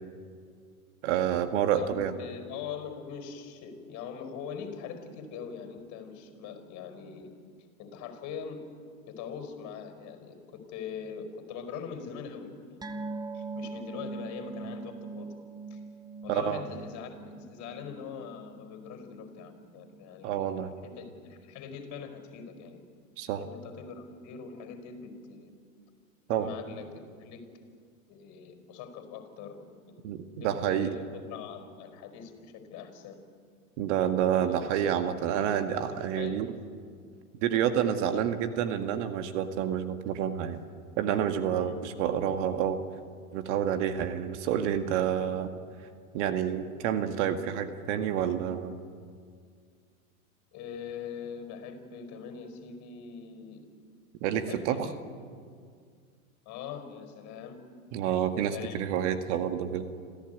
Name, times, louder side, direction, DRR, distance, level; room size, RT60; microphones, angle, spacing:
voice 1, 1.0-2.1 16.3-16.6 20.2-20.7 23.2-23.4 26.3-26.5 30.0-30.9 33.8-36.5 37.4-40.6 41.0-42.8 43.3-45.5 46.1-48.8 54.2-54.9 57.9-59.9, right 9 dB, 55° right, 8 dB, 2.0 m, -28 dB
voice 2, 1.7-7.3 7.8-8.6 9.1-15.3 15.7-15.8 16.2-22.8 23.4-25.5 26.3-27.4 28.1-29.7 30.4-33.2 34.4-34.7 35.9-36.5 37.9-38.2 38.8-39.2 41.6-41.7 50.5-53.7 54.3-55.0 56.4-57.6 58.5-59.0, left 6 dB, 40° left, 7 dB, 4.9 m, -42 dB
sound 1, 12.8-19.6 19.9-20.1 20.5-20.6, right 3 dB, 10° right, 1.2 m, -42 dB
27.0 x 15.0 x 9.4 m, 2.1 s
hypercardioid pair, 115°, 43 cm